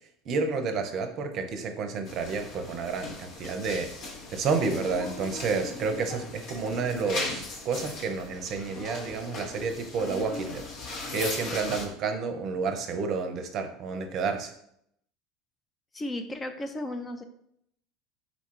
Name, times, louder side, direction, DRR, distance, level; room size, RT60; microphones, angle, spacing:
voice 1, 0.2-3.9 4.3-10.6 11.1-14.5, right 4 dB, 50° right, 6 dB, 0.6 m, -30 dB
sound 1, 2.0-11.9, left 3 dB, 50° left, 0.8 m, -38 dB
voice 2, 15.9-17.2, left 1 dB, 20° left, 6 dB, 0.5 m, -34 dB
4.0 x 2.3 x 4.5 m, 0.72 s
hypercardioid pair, 75°, 0 cm